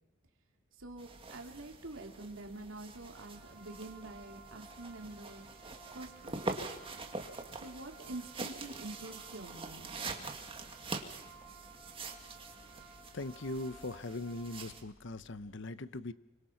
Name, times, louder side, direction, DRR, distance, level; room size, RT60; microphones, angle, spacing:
sound 1, 0.8-15.6, left 1 dB, 90° left, 4.6 m, -65 dB
voice 1, 0.8-5.5 5.9-6.7 7.6-9.9, right 2 dB, 85° right, 2 dB, 2.8 m, -46 dB
sound 2, 1.0-14.8, right 3 dB, 25° right, 2.2 m, -45 dB
sound 3, 3.1-14.6, right 4 dB, 5° right, 7.2 m, -57 dB
voice 2, 13.1-16.1, left 2 dB, 65° left, 14 dB, 0.9 m, -40 dB
26.0 x 24.5 x 5.9 m, 0.96 s
head